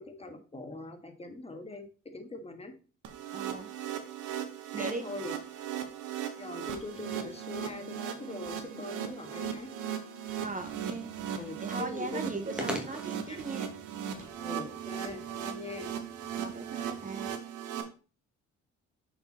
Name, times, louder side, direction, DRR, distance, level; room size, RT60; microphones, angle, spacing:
voice 1, 0.0-1.8 2.1-2.7 4.8-5.4 6.4-9.7 11.4-12.3 13.3-13.6 14.4-15.9, left 2 dB, 20° left, 6 dB, 1.5 m, -42 dB
sound 1, 3.0-17.8, right 9 dB, 85° right, 1.1 m, -38 dB
voice 2, 3.3-3.7 4.7-5.0 10.4-11.1 11.6-13.7 16.4-17.3, right 3 dB, 25° right, 6 dB, 0.8 m, -38 dB
sound 2, 7.5-7.9 8.4-8.9 9.4-9.7 10.3-10.6 11.2-11.4 12.5-12.8 13.4-13.7 14.2-14.5 15.0-15.3 15.8-16.1, right 3 dB, 50° right, 2.9 m, -57 dB
sound 3, 10.4-17.4, left 1 dB, 5° right, 1.6 m, -45 dB
6.6 x 4.6 x 4.1 m, 0.37 s
cardioid pair, 90°, 30 cm